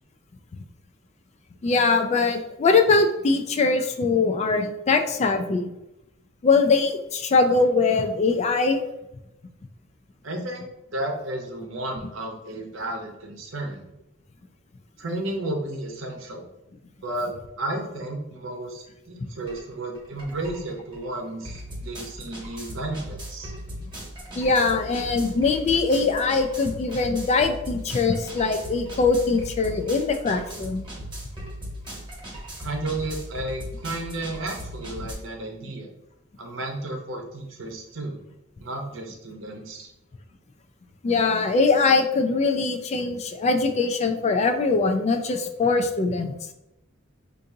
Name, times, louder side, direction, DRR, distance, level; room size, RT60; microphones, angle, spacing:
voice 1, 1.6-5.7 6.4-8.8 23.8-23.9 24.4-30.8 41.0-46.3, left 4 dB, 35° left, 6 dB, 0.3 m, -22 dB
voice 2, 10.2-10.7 10.9-13.8 15.0-16.4 17.0-23.5 32.6-35.9 36.4-38.2 38.6-39.9, right 1 dB, 70° right, 2 dB, 0.8 m, -33 dB
sound 1, 19.5-19.6 19.9-35.1, equal, 25° right, 1.1 m, -38 dB
4.7 x 2.6 x 2.7 m, 0.90 s
head